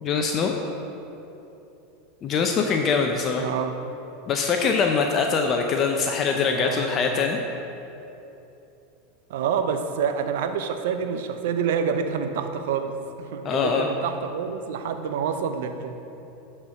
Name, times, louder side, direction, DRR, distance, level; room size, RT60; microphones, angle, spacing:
voice 1, 0.0-0.5 2.2-3.4 4.3-7.4 13.4-13.9, left 5 dB, 40° left, 3 dB, 0.7 m, -23 dB
voice 2, 3.3-3.8 6.3-7.1 9.3-16.0, right 7 dB, 75° right, 7 dB, 0.7 m, -28 dB
11.0 x 4.5 x 5.8 m, 3.0 s
hypercardioid pair, 105°, 0 cm